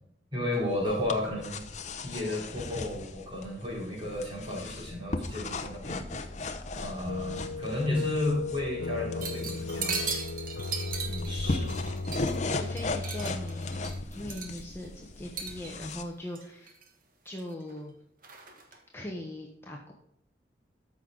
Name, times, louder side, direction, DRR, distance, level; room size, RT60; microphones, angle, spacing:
voice 1, 0.3-1.6 2.0-6.1 6.7-10.1 11.2-11.8, left 1 dB, 25° right, -4 dB, 4.6 m, -33 dB
sound 1, 0.5-16.0, left 3 dB, 40° left, 0.8 m, -38 dB
sound 2, 7.1-14.0, left 3 dB, 70° left, 0.5 m, -36 dB
sound 3, 9.2-12.5 12.8-14.8 15.3-15.9 16.3-16.9 17.3-17.8 18.2-18.8, right 5 dB, 45° right, 1.5 m, -38 dB
voice 2, 11.0-11.4 12.5-13.8 14.1-16.7 17.2-17.9 18.9-19.9, left 1 dB, 15° left, -1 dB, 1.1 m, -40 dB
13.5 x 6.3 x 4.0 m, 0.75 s
head